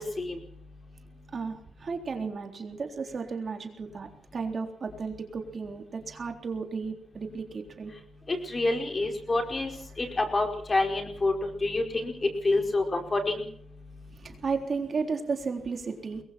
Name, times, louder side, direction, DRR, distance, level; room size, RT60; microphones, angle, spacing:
voice 1, 1.3-7.9 14.2-16.2, right 5 dB, 40° right, 4 dB, 3.7 m, -34 dB
voice 2, 8.3-9.7 10.0-11.3 11.6-12.1 12.4-13.4, left 2 dB, 25° left, 4 dB, 4.9 m, -27 dB
27.0 x 22.5 x 4.4 m, 0.64 s
wide cardioid pair, 165°, 0 cm